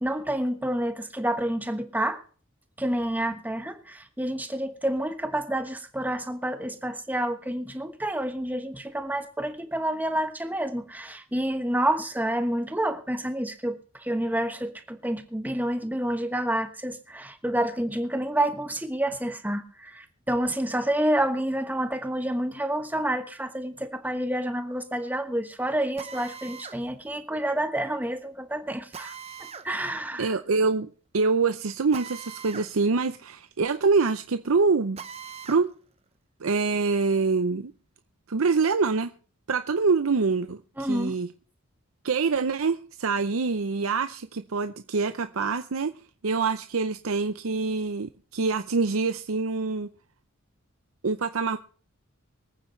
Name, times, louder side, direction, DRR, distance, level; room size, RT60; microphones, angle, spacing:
voice 1, 0.0-2.2 2.8-29.1 29.4-30.3 40.8-41.2, right 1 dB, 10° right, 1.2 m, -29 dB
Drill, 26.0-26.8 28.9-29.7 31.9-32.7 33.1-33.2 35.0-35.6, right 6 dB, 30° right, 0.8 m, -41 dB
voice 2, 30.2-35.0 35.5-35.7 36.4-37.7 38.3-39.1 39.5-41.3 42.0-45.9 46.2-49.9 51.0-51.6, right 4 dB, 85° right, 0.6 m, -25 dB
24.5 x 9.0 x 3.2 m
head